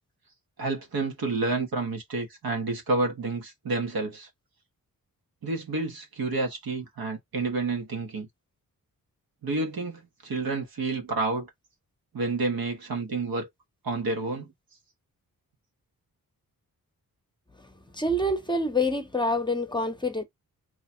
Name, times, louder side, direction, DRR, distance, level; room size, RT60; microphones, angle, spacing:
voice 1, 0.6-4.3 5.4-8.3 9.4-11.5 12.1-13.5 13.8-14.5, right 3 dB, 80° right, 1.3 m, -29 dB
voice 2, 17.6-20.2, left 1 dB, 15° left, 0.8 m, -27 dB
3.1 x 2.3 x 4.3 m
wide cardioid pair, 100°, 36 cm